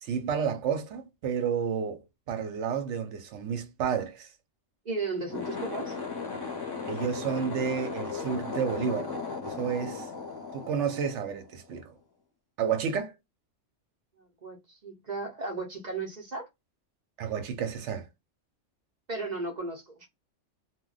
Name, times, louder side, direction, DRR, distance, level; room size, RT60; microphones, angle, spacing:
voice 1, 0.0-4.3 6.9-9.1 9.4-10.1 10.5-11.9 12.6-13.1 17.2-18.1, right 7 dB, 75° right, 0.9 m, -31 dB
voice 2, 4.9-6.0 14.4-14.6 14.8-16.5 19.1-20.1, right 3 dB, 45° right, 0.6 m, -35 dB
sound 1, 5.2-11.7, left 4 dB, 25° left, 0.6 m, -36 dB
2.2 x 2.2 x 3.7 m
omnidirectional pair, 1.2 m